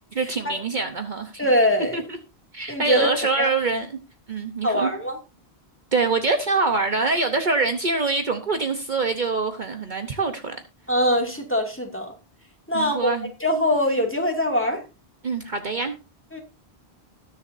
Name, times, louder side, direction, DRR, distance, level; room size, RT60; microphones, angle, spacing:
voice 1, 0.1-1.4 1.9-2.2 2.5-4.0 4.3-4.9 5.9-10.6 12.7-13.3 15.2-15.9, right 3 dB, 50° right, 7 dB, 1.1 m, -25 dB
voice 2, 1.4-2.0 2.7-3.1 3.4-3.5 4.6-5.2 10.9-12.1 12.7-13.1 13.4-14.8 16.3-16.4, equal, 10° left, 2 dB, 2.4 m, -22 dB
20.0 x 7.0 x 2.7 m, 0.29 s
omnidirectional pair, 1.1 m